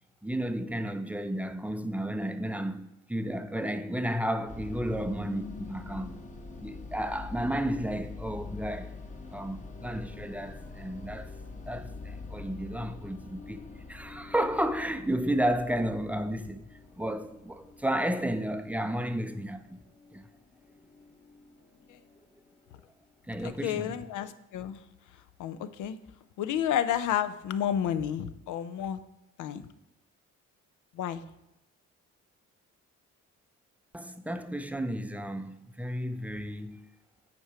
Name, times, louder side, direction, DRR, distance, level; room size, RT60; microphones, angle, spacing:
voice 1, 0.2-6.2 6.6-9.0 9.3-11.3 11.7-16.7 17.0-19.8 20.1-20.3 23.3-24.0 33.9-36.8, right 1 dB, 5° right, 0.5 m, -32 dB
sound 1, 4.5-22.8, left 3 dB, 25° left, 0.9 m, -45 dB
voice 2, 23.4-24.8 25.4-26.0 26.4-29.0 29.4-29.6 30.9-31.2, left 9 dB, 80° left, 0.6 m, -31 dB
8.5 x 4.5 x 4.9 m
cardioid pair, 90°, 30 cm